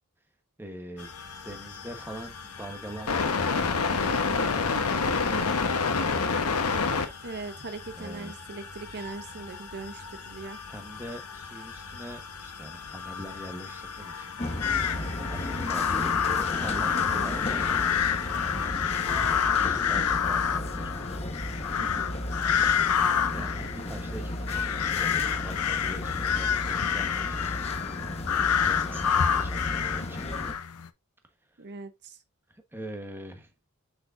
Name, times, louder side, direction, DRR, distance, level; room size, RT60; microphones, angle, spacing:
voice 1, 0.6-1.1 1.4-3.4 3.9-5.6 7.9-8.4 10.7-14.4 15.2-16.0 16.5-18.2 19.0-20.9 23.3-27.5 28.6-30.2 32.5-33.5, right 1 dB, 10° right, 1.2 m, -43 dB
sound 1, 1.0-18.7, left 4 dB, 70° left, 1.1 m, -32 dB
voice 2, 7.2-10.6 16.9-17.3 21.8-22.1 31.6-32.2, right 3 dB, 50° right, 0.7 m, -40 dB
sound 2, 14.4-30.5, left 1 dB, 30° left, 1.1 m, -35 dB
sound 3, 14.6-30.9, left 8 dB, 90° left, 0.7 m, -28 dB
6.3 x 6.1 x 2.5 m
head